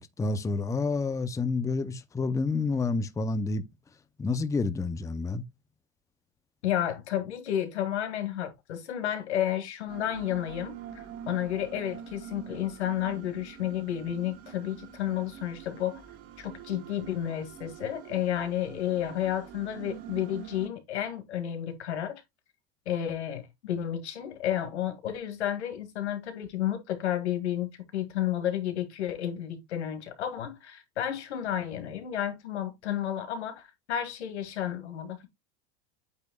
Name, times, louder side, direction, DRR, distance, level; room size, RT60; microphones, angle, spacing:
voice 1, 0.0-3.6 4.2-5.4, left 3 dB, 10° left, 0.6 m, -29 dB
voice 2, 6.6-16.0 16.4-22.2 22.9-35.3, left 11 dB, 90° left, 2.2 m, -31 dB
sound 1, 9.9-20.7, right 9 dB, 45° right, 1.8 m, -45 dB
8.7 x 6.3 x 2.3 m
supercardioid pair, 110°, 33 cm